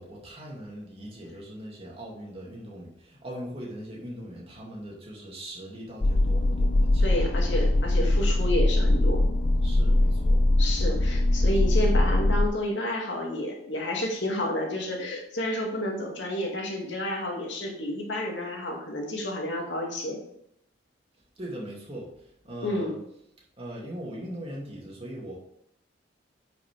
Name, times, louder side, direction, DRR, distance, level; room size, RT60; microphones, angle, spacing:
voice 1, 0.0-7.0 9.6-10.4 10.9-11.0 21.4-23.0 23.6-25.4, right 1 dB, 35° right, -3 dB, 2.5 m, -40 dB
sound 1, 6.0-12.5, left 1 dB, 35° left, 0.5 m, -22 dB
voice 2, 7.0-9.2 10.6-20.2 22.6-23.0, left 1 dB, 80° left, 0 dB, 2.3 m, -30 dB
9.7 x 5.9 x 3.4 m, 0.75 s
head